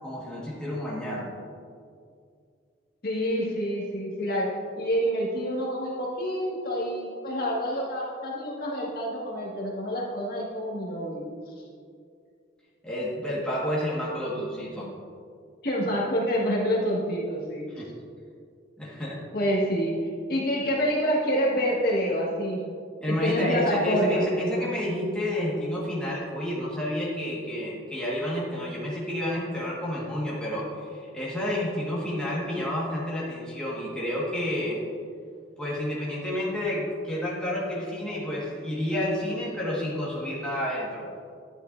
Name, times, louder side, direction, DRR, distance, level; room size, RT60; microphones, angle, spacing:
voice 1, 0.0-1.3 12.8-14.9 17.8-17.9 18.8-19.2 23.0-34.8 35.6-41.0, left 1 dB, 5° left, -7 dB, 1.6 m, -30 dB
voice 2, 3.0-4.5 4.8-11.3 15.6-17.7 19.3-22.6 23.2-24.2, equal, 50° left, -4 dB, 1.9 m, -27 dB
11.0 x 9.8 x 2.6 m, 2.3 s
head